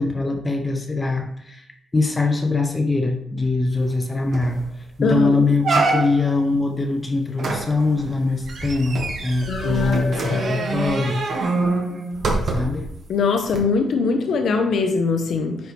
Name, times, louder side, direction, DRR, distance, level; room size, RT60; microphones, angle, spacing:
voice 1, 0.0-1.7 1.9-4.6 5.0-11.2 12.4-12.9, left 3 dB, 20° left, 4 dB, 0.8 m, -22 dB
sound 1, 3.9-4.0 4.3-4.6 5.0-5.1 5.6-6.4 7.4-12.9 13.5-13.6, right 3 dB, 60° right, 1.6 m, -25 dB
voice 2, 9.5-10.7 13.1-15.6, left 4 dB, 65° left, 5 dB, 0.8 m, -22 dB
9.5 x 4.6 x 3.3 m, 0.75 s
cardioid pair, 120°, 0 cm